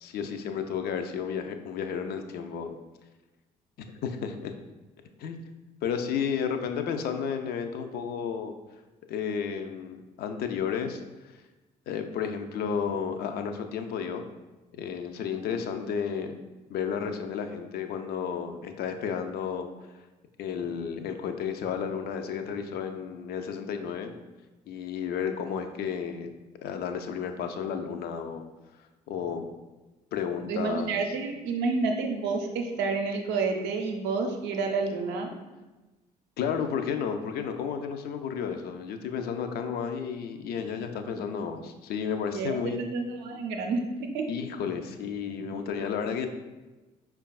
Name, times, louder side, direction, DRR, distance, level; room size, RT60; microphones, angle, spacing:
voice 1, 0.0-2.7 3.8-4.5 5.2-5.4 5.8-8.5 9.1-11.3 11.9-14.2 14.8-16.4 16.7-19.7 20.4-24.2 24.7-26.3 26.6-28.4 29.1-29.5 30.1-31.0 36.4-42.9 44.3-46.3, left 7 dB, 50° left, 7 dB, 0.4 m, -32 dB
voice 2, 30.5-35.3 42.3-44.3, right 4 dB, 60° right, 3 dB, 0.5 m, -29 dB
5.0 x 2.3 x 2.3 m, 1.1 s
figure-of-eight pair, 50°, 20 cm